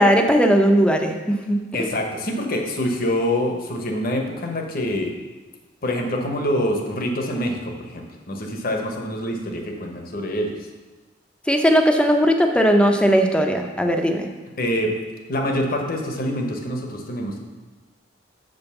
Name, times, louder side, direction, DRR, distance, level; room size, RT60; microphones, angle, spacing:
voice 1, 0.0-1.9 11.5-14.3, equal, 5° left, 4 dB, 0.7 m, -18 dB
voice 2, 1.7-5.1 5.8-10.6 14.6-14.9 15.3-17.4, left 1 dB, 50° left, 3 dB, 1.1 m, -25 dB
6.5 x 5.3 x 6.9 m, 1.2 s
head